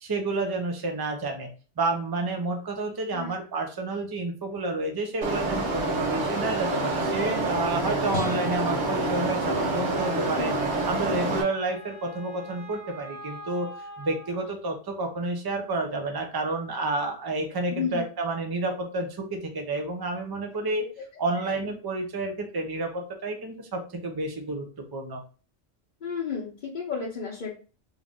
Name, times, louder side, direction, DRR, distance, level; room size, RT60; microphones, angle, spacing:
voice 1, 0.0-1.5 1.8-10.5 10.9-13.7 14.0-20.9 21.2-25.2, right 2 dB, 30° right, 4 dB, 0.5 m, -30 dB
sound 1, 5.2-11.4, right 2 dB, 85° right, 1.3 m, -27 dB
sound 2, 8.1-10.5, left 4 dB, 80° left, 1.0 m, -38 dB
Wind instrument woodwind instrument, 9.9-14.5, equal, 20° left, 0.6 m, -44 dB
voice 2, 17.7-18.0 21.4-21.6 26.0-27.5, left 6 dB, 45° left, -4 dB, 0.9 m, -32 dB
3.2 x 2.5 x 3.5 m, 0.35 s
omnidirectional pair, 1.2 m